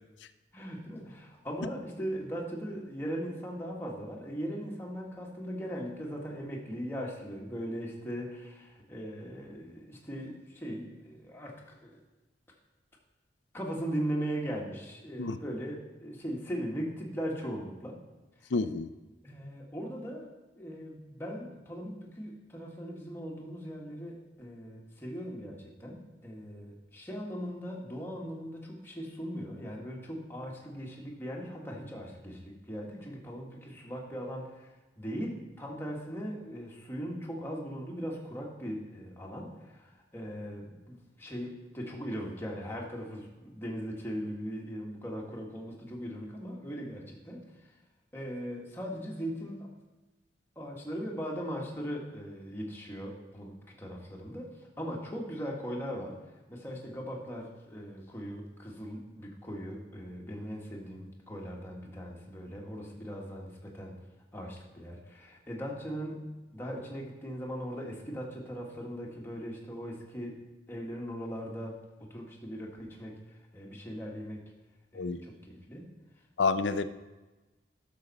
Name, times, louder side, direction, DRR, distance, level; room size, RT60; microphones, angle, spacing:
voice 1, 0.5-12.0 13.5-18.0 18.4-18.5 19.2-34.7 35.0-47.5 48.1-49.7 50.5-56.2 56.5-64.0 64.3-70.4 70.7-73.2 73.5-74.4 74.9-75.9, equal, 15° left, 1.6 m, -39 dB
voice 2, 18.5-18.9 74.9-75.2 76.4-76.8, left 4 dB, 80° left, 0.5 m, -28 dB
11.5 x 6.6 x 4.1 m
head